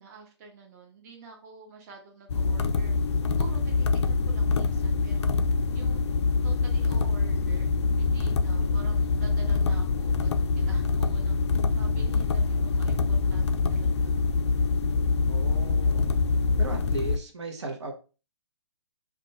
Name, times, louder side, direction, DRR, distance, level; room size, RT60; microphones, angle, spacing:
voice 1, 0.0-3.0 3.3-5.4 5.7-6.0 6.4-11.3 11.8-14.2, right 4 dB, 35° right, 0 dB, 0.8 m, -48 dB
sound 1, 2.3-17.2, left 4 dB, 75° left, 0.4 m, -25 dB
voice 2, 8.6-8.9 15.3-16.1 16.6-17.9, right 2 dB, 80° right, 2 dB, 1.0 m, -37 dB
2.5 x 2.3 x 4.0 m, 0.34 s
hypercardioid pair, 145°, 15 cm